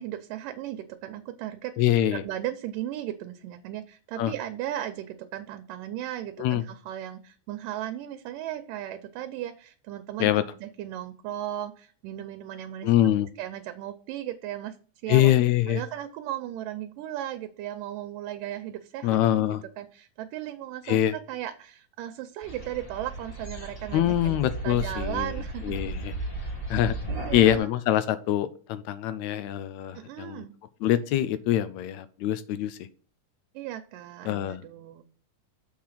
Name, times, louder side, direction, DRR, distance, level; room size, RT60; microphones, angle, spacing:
voice 1, 0.0-1.7 2.1-10.3 10.6-12.9 13.4-14.8 15.0-15.3 15.7-19.5 19.8-25.7 27.1-27.7 29.9-30.6 33.5-35.0, right 12 dB, 90° right, 7 dB, 2.3 m, -36 dB
voice 2, 1.8-2.2 4.2-4.3 6.4-6.6 10.2-10.4 12.8-13.3 15.1-15.8 19.0-19.6 20.9-21.1 23.9-25.3 25.6-26.2 26.7-26.9 27.3-30.4 30.8-32.8 34.3-34.6, left 12 dB, 85° left, 13 dB, 1.6 m, -24 dB
sound 1, 22.4-27.6, right 2 dB, 15° left, 1.4 m, -35 dB
7.1 x 4.7 x 5.7 m, 0.42 s
omnidirectional pair, 3.7 m